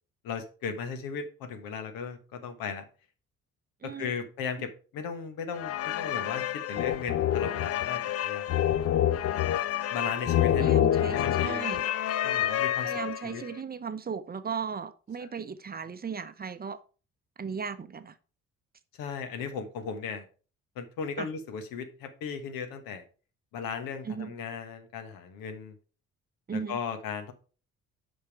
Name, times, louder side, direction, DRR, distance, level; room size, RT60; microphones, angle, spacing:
voice 1, 0.2-2.9 3.8-8.6 9.9-10.8 11.1-11.6 12.2-12.9 13.2-13.4 15.2-15.3 19.0-20.3 20.7-23.0 23.5-25.8 26.5-27.3, left 6 dB, 60° left, 1.3 m, -36 dB
sound 1, 5.6-13.4, left 11 dB, 40° left, 0.5 m, -27 dB
voice 2, 10.5-11.9 12.8-16.8 17.4-18.2 21.2-21.3 24.0-24.3 26.5-26.8, right 6 dB, 25° right, 0.8 m, -36 dB
6.5 x 5.5 x 4.6 m
figure-of-eight pair, 45°, 38 cm